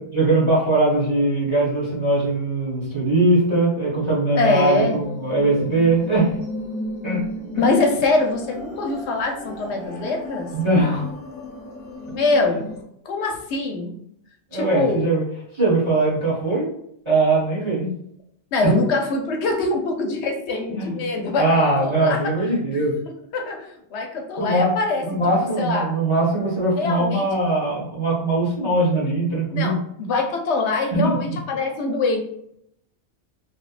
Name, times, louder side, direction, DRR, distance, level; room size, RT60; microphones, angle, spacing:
voice 1, 0.1-6.4 7.0-7.2 7.5-7.6 10.5-11.0 14.5-15.2 15.5-16.7 17.0-17.9 18.6-18.8 20.7-20.9 21.4-22.9 24.4-24.7 25.0-29.8 30.9-31.4, right 2 dB, 30° right, -7 dB, 0.9 m, -21 dB
voice 2, 4.3-5.0 7.6-10.5 12.1-12.7 13.1-13.9 14.5-15.1 18.5-21.5 21.8-22.2 23.3-25.0 25.6-26.0 26.8-27.3 29.5-32.2, left 3 dB, 75° left, 3 dB, 0.9 m, -23 dB
sound 1, 4.8-12.8, left 1 dB, 35° left, 0.9 m, -35 dB
2.9 x 2.1 x 2.4 m, 0.73 s
omnidirectional pair, 1.2 m